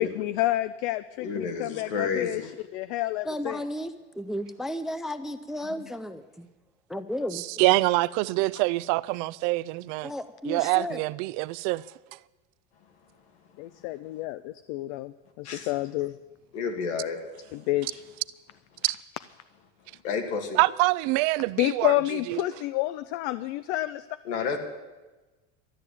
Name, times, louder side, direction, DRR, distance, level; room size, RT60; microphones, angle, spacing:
voice 1, 0.0-2.4 2.7-3.6 13.6-16.2 17.5-18.0 21.6-24.1, left 17 dB, 70° left, 0.6 m, -29 dB
voice 2, 1.2-2.5 15.4-15.7 16.5-17.2 20.0-20.6 24.2-24.6, left 5 dB, 85° left, 2.4 m, -30 dB
voice 3, 3.2-6.5 6.9-7.4 10.0-11.0, left 1 dB, ahead, 0.4 m, -33 dB
voice 4, 7.3-10.1 10.4-11.8 18.8-19.0 20.6-21.9 22.3-22.4, right 21 dB, 60° right, 0.5 m, -25 dB
13.0 x 9.9 x 8.5 m
supercardioid pair, 130°, 33 cm